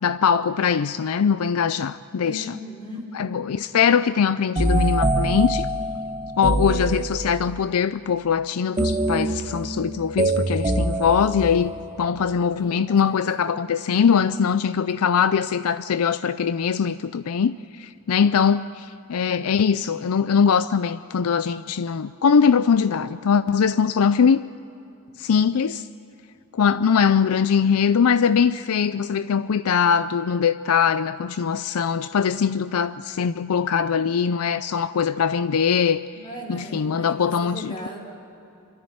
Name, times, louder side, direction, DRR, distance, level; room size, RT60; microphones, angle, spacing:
voice 1, 0.0-2.6 3.1-5.7 6.4-11.7 12.0-24.4 25.2-25.9 26.5-36.0 36.5-37.7, left 6 dB, 70° left, 14 dB, 0.4 m, -21 dB
voice 2, 2.2-3.1 12.6-13.4 36.1-38.0, left 1 dB, 20° left, 1 dB, 4.1 m, -38 dB
sound 1, 4.6-7.5 8.8-12.1, right 1 dB, 25° right, 1.1 m, -24 dB
27.0 x 13.5 x 9.4 m, 2.9 s
head